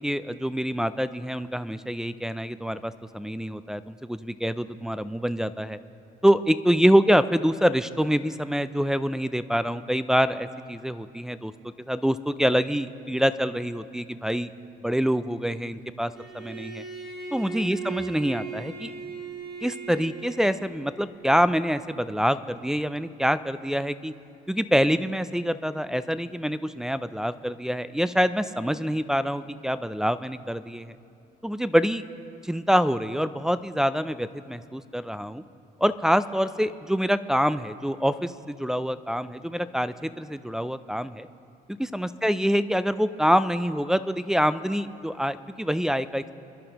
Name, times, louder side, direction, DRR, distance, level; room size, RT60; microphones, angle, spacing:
voice 1, 0.0-5.8 6.2-11.5 11.9-14.5 14.8-16.8 17.3-18.9 19.6-24.1 24.5-30.9 31.4-32.0 32.4-35.4 35.8-41.3 41.9-46.3, equal, 5° right, 11 dB, 0.3 m, -25 dB
Bowed string instrument, 16.2-21.0, right 5 dB, 70° right, 2.4 m, -38 dB
26.5 x 11.0 x 2.9 m, 2.6 s
cardioid pair, 110°, 17 cm